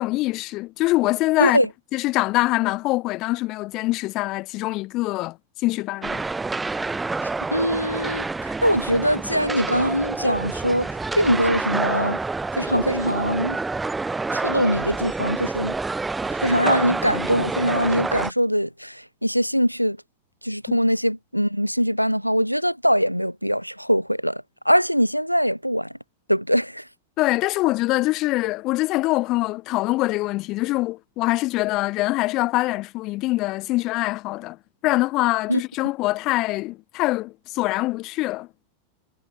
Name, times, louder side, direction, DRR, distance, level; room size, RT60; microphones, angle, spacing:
voice 1, 0.0-1.6 1.9-6.2 20.7-20.8 27.2-34.6 34.8-38.5, left 19 dB, 40° left, 0.8 m, -24 dB
sound 1, 6.0-18.3, right 3 dB, 10° right, 1.8 m, -28 dB
voice 2, 7.5-8.2 8.6-12.2 12.6-13.6 14.3-15.7 16.3-20.0 20.4-25.9 26.3-26.8 35.5-35.6, equal, 90° right, 0.5 m, -22 dB
figure-of-eight pair, 90°, 0 cm